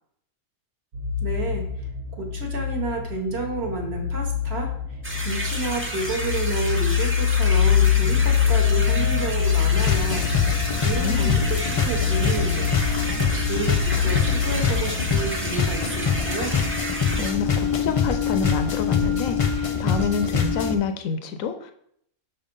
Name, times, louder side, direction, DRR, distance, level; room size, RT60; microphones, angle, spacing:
sound 1, 0.9-15.2, left 8 dB, 80° right, 1.3 m, -24 dB
voice 1, 1.2-1.7 2.2-4.7 5.2-12.7 13.2-16.6, right 3 dB, 50° right, 2 dB, 1.2 m, -30 dB
sound 2, 5.0-17.3, right 1 dB, 15° right, 0.5 m, -32 dB
sound 3, 9.8-20.8, left 5 dB, 55° left, 0.3 m, -25 dB
voice 2, 10.7-11.4 17.2-21.7, left 5 dB, 75° left, 8 dB, 1.0 m, -28 dB
5.7 x 3.5 x 5.2 m, 0.69 s
omnidirectional pair, 1.5 m